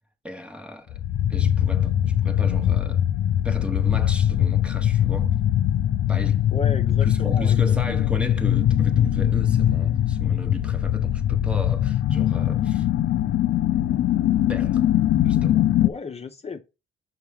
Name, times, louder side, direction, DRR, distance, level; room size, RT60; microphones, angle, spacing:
voice 1, 0.2-1.0 1.3-3.0 3.4-5.3 6.1-6.5 7.0-12.9 14.5-14.9 15.2-15.7, equal, 5° right, 0.9 m, -35 dB
sound 1, 0.9-15.9, left 11 dB, 65° left, 0.5 m, -21 dB
voice 2, 6.5-7.6 7.9-8.1 15.3-15.4 15.8-16.6, left 4 dB, 30° left, 0.9 m, -34 dB
6.6 x 4.6 x 3.5 m
cardioid pair, 90°, 20 cm